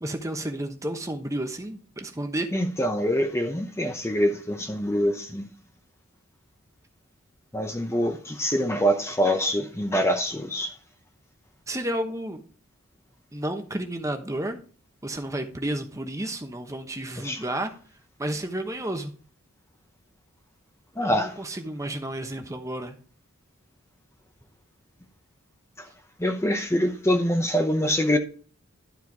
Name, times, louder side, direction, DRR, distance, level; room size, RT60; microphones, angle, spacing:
voice 1, 0.0-2.5 11.7-12.4 13.3-14.6 15.0-17.7 18.2-19.1 21.0-22.9, right 1 dB, 15° right, 1.0 m, -31 dB
voice 2, 2.5-5.5 7.5-10.7 17.2-17.4 21.0-21.3 26.2-28.2, equal, 15° left, 0.8 m, -24 dB
12.0 x 4.5 x 4.6 m
head